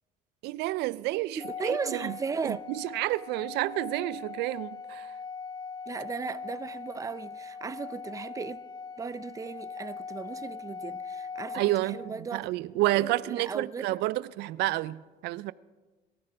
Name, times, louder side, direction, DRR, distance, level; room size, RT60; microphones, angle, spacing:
voice 1, 0.4-2.1 2.4-5.1 11.5-15.5, right 17 dB, 85° right, 0.4 m, -30 dB
Organ, 1.4-12.2, left 5 dB, 25° left, 0.8 m, -41 dB
voice 2, 1.4-2.7 5.9-8.6 9.0-12.5 12.9-13.9, right 5 dB, 20° right, 0.5 m, -36 dB
22.5 x 13.5 x 3.4 m
cardioid pair, 110°, 17 cm